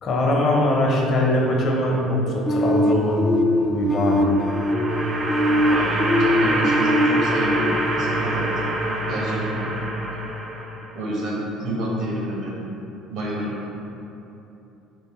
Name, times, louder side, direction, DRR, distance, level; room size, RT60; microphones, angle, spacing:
voice 1, 0.0-3.3 3.6-4.3, left 1 dB, 55° left, -1 dB, 0.7 m, -21 dB
sound 1, 2.5-9.2, left 1 dB, 25° left, 0.4 m, -23 dB
sound 2, 4.0-11.1, right 2 dB, 40° right, 0.4 m, -26 dB
voice 2, 5.7-8.5 9.1-9.8 10.9-12.7 13.1-13.7, right 1 dB, 70° right, -4 dB, 1.1 m, -28 dB
3.7 x 3.3 x 3.0 m, 2.9 s
supercardioid pair, 80°, 0 cm